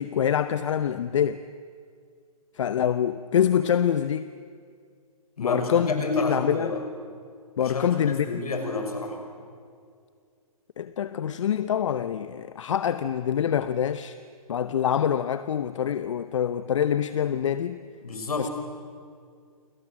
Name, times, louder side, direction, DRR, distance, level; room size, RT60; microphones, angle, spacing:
voice 1, 0.0-1.4 2.6-4.3 5.4-6.7 7.6-8.4 10.8-14.2 14.5-17.8 18.4-18.5, left 9 dB, 55° left, 12 dB, 0.9 m, -25 dB
voice 2, 5.4-6.8 7.6-9.2 18.0-18.5, left 3 dB, 75° left, 4 dB, 6.5 m, -30 dB
29.5 x 24.5 x 7.6 m, 2.2 s
hypercardioid pair, 135°, 19 cm